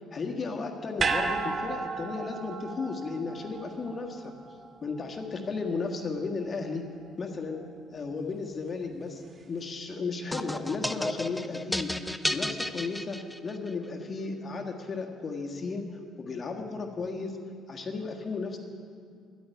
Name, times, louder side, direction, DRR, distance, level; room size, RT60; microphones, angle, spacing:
voice 1, 0.1-4.3 4.8-6.9 7.2-11.9 12.3-15.9 16.2-17.4 17.7-18.6, left 4 dB, 35° left, 3 dB, 1.6 m, -34 dB
sound 1, 1.0-5.3 5.6-5.7, right 4 dB, 40° right, 1.2 m, -33 dB
sound 2, 10.3-13.7, left 1 dB, 5° left, 0.6 m, -32 dB
11.0 x 9.0 x 10.0 m, 2.2 s
figure-of-eight pair, 50°, 0 cm